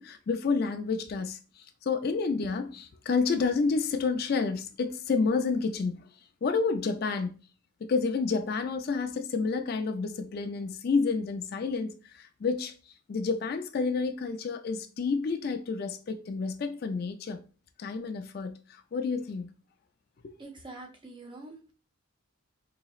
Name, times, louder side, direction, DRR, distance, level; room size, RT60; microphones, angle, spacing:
voice 1, 0.0-6.0 6.4-7.3 7.8-12.7 13.1-17.4 17.8-19.5 20.2-20.3, left 4 dB, 50° left, 0.4 m, -29 dB
voice 2, 20.4-21.7, right 2 dB, 25° right, 0.6 m, -45 dB
4.1 x 2.9 x 2.4 m
head